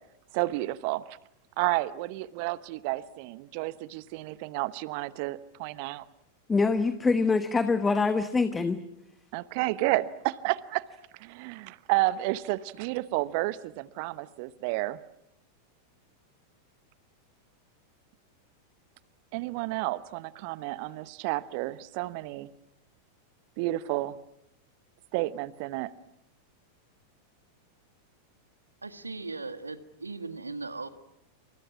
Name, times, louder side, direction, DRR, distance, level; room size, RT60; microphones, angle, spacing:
voice 1, 0.3-1.0 1.6-6.0 9.3-10.9 11.1-15.0 19.3-22.5 23.6-24.2 25.1-25.9, right 18 dB, 45° right, 17 dB, 1.0 m, -31 dB
voice 2, 6.5-8.8, left 4 dB, 15° left, 11 dB, 1.2 m, -24 dB
voice 3, 28.8-30.9, right 3 dB, 80° right, 11 dB, 1.6 m, -38 dB
29.0 x 26.5 x 6.1 m, 0.80 s
figure-of-eight pair, 90°, 0 cm